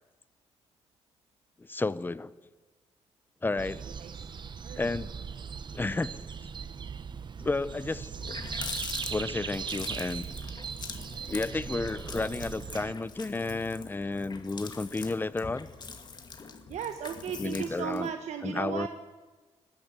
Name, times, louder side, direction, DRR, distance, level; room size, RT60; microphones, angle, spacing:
voice 1, 1.6-2.3 3.4-4.0 4.8-5.1 5.7-6.2 7.4-8.1 9.1-10.2 11.3-15.7 17.4-18.1 18.4-18.9, left 3 dB, 15° left, 17 dB, 0.7 m, -32 dB
sound 1, 3.6-12.9, right 6 dB, 40° right, 1.0 m, -39 dB
voice 2, 4.6-4.9 16.7-18.9, right 8 dB, 80° right, 7 dB, 1.3 m, -35 dB
Water tap faucet, 8.0-18.1, left 5 dB, 40° left, 2.1 m, -43 dB
21.0 x 16.5 x 8.2 m, 1.3 s
cardioid pair, 110°, 12 cm